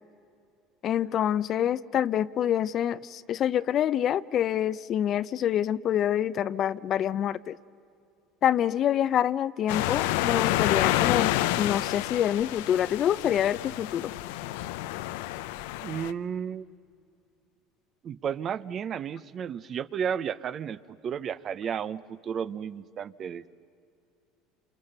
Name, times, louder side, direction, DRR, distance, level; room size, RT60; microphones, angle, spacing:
voice 1, 0.8-7.6 8.4-14.1, left 10 dB, 45° left, 16 dB, 0.6 m, -26 dB
sound 1, 9.7-16.1, left 15 dB, 85° left, 0.6 m, -29 dB
voice 2, 15.8-16.7 18.0-23.4, right 8 dB, 40° right, 16 dB, 0.7 m, -33 dB
28.5 x 27.5 x 6.7 m, 2.6 s
supercardioid pair, 115°, 0 cm